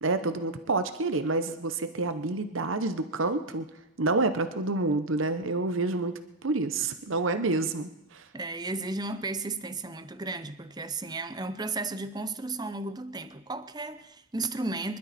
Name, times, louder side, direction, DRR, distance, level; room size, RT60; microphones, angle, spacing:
voice 1, 0.0-3.7 4.0-8.3, right 3 dB, 80° right, 0.9 m, -28 dB
voice 2, 8.3-15.0, right 3 dB, 20° right, 0.7 m, -34 dB
25.0 x 12.0 x 4.2 m
head